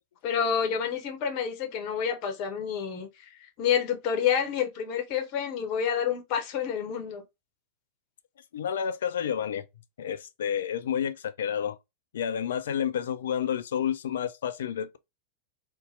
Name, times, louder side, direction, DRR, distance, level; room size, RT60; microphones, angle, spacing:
voice 1, 0.2-7.2, left 8 dB, 45° left, 0.7 m, -29 dB
voice 2, 8.5-9.6 10.0-11.8 12.1-15.0, left 8 dB, 60° left, 0.3 m, -30 dB
2.7 x 2.1 x 2.4 m
figure-of-eight pair, 90°, 0 cm